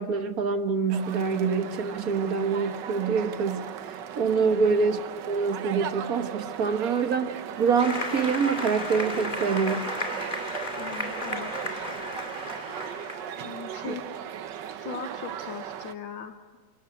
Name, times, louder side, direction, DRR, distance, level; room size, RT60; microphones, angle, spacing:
voice 1, 0.0-5.0 5.3-9.9 13.8-13.9, right 5 dB, 55° right, 8 dB, 1.7 m, -26 dB
sound 1, 0.9-15.9, right 9 dB, 75° right, 1.6 m, -37 dB
Applause, 7.8-13.4, left 1 dB, 25° left, 2.9 m, -34 dB
voice 2, 10.8-11.5 13.4-14.1 14.7-16.6, left 6 dB, 90° left, 8 dB, 2.0 m, -39 dB
29.0 x 18.0 x 8.5 m, 1.4 s
omnidirectional pair, 2.0 m